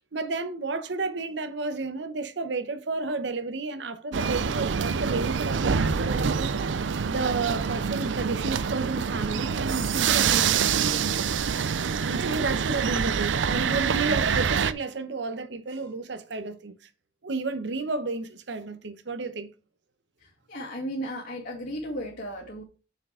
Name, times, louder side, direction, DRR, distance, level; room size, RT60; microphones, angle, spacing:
voice 1, 0.1-6.5 7.1-10.7 11.0-11.2 12.0-16.8 17.2-19.5, right 3 dB, 70° right, 0.9 m, -31 dB
sound 1, 4.1-14.7, right 6 dB, 85° right, 0.5 m, -26 dB
voice 2, 20.2-22.6, equal, 65° left, 2.3 m, -35 dB
6.8 x 6.5 x 3.7 m
head